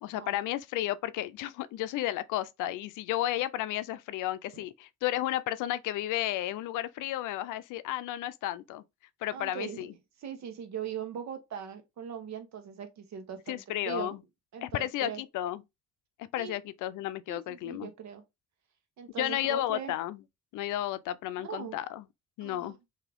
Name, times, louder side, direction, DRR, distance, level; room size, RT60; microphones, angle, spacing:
voice 1, 0.0-8.8 9.2-9.9 13.5-14.2 14.6-15.6 16.2-17.9 19.2-20.2 20.5-22.0 22.4-22.8, left 14 dB, 85° left, 0.5 m, -33 dB
voice 2, 9.3-9.9 10.2-14.2 14.5-15.2 16.4-16.5 17.3-18.2 19.0-19.9 21.4-21.8 22.4-22.8, right 7 dB, 65° right, 1.0 m, -40 dB
3.6 x 2.8 x 3.4 m
cardioid pair, 90°, 30 cm